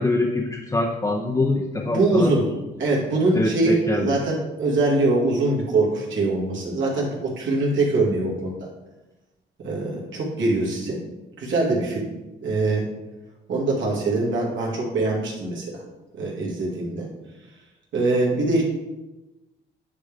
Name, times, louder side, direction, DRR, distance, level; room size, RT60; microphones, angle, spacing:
voice 1, 0.0-2.3 3.3-4.2, left 2 dB, 15° left, 1 dB, 0.6 m, -24 dB
voice 2, 1.8-2.5 2.8-8.7 9.6-11.0 11.4-12.1 12.4-12.9 13.5-15.8 16.1-17.1 17.9-18.6, right 2 dB, 70° right, -4 dB, 2.1 m, -23 dB
9.4 x 3.4 x 3.5 m, 1.1 s
cardioid pair, 90°, 20 cm